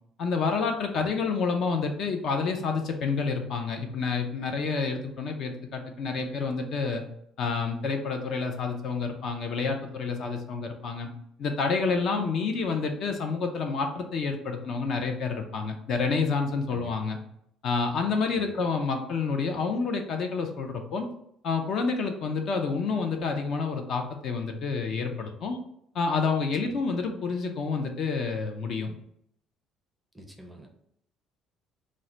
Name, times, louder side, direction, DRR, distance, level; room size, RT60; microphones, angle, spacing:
voice 1, 0.2-7.0 7.4-11.1 11.4-17.2 17.6-21.1 21.4-25.6 25.9-28.9, left 4 dB, 50° left, 4 dB, 0.6 m, -29 dB
voice 2, 30.1-30.7, right 1 dB, 5° right, 2 dB, 0.5 m, -45 dB
3.7 x 2.1 x 4.3 m, 0.72 s
cardioid pair, 150°, 0 cm